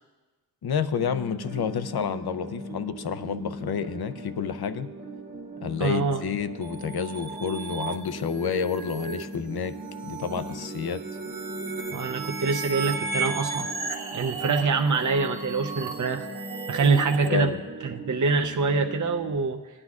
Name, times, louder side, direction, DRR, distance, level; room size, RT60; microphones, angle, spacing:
voice 1, 0.6-4.9 5.6-9.7 10.0-11.0 17.2-17.6, left 7 dB, 80° left, 12 dB, 0.6 m, -29 dB
sound 1, 0.9-19.4, right 2 dB, 35° right, 1.1 m, -40 dB
voice 2, 5.8-6.2 11.9-13.7 14.1-16.3 16.7-17.5 17.8-19.6, right 4 dB, 55° right, 5 dB, 0.6 m, -25 dB
sound 2, 6.6-17.3, right 4 dB, 80° right, 1.0 m, -35 dB
17.5 x 9.8 x 2.4 m, 1.3 s
wide cardioid pair, 60°, 37 cm